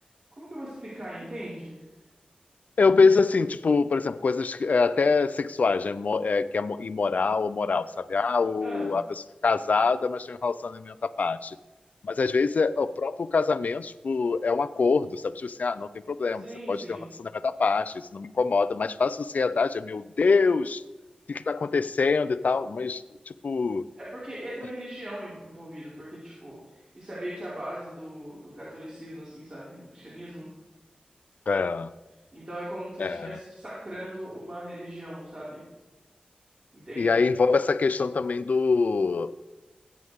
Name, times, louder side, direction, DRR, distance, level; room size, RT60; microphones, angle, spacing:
voice 1, 0.3-1.8 8.6-9.0 16.4-17.1 24.0-30.5 32.3-35.6 36.7-37.2, right 1 dB, 40° right, -9 dB, 5.3 m, -39 dB
voice 2, 2.8-9.0 9.4-11.6 12.0-20.8 21.3-23.8 31.5-31.9 33.0-33.4 37.0-39.3, left 4 dB, 70° left, 13 dB, 0.6 m, -25 dB
21.5 x 9.5 x 3.7 m, 1.1 s
wide cardioid pair, 90°, 3 cm